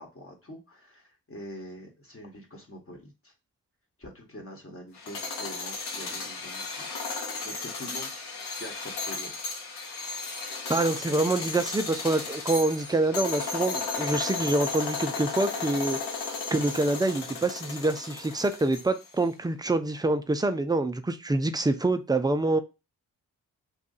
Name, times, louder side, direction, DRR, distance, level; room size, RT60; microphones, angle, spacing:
voice 1, 0.0-3.3 4.0-6.9 7.1-8.1 8.6-9.3, left 1 dB, 35° left, 1.2 m, -44 dB
sound 1, 5.0-19.1, left 4 dB, 75° left, 0.9 m, -34 dB
voice 2, 10.7-22.6, right 2 dB, 10° right, 0.4 m, -26 dB
2.7 x 2.4 x 3.8 m
supercardioid pair, 50°, 40 cm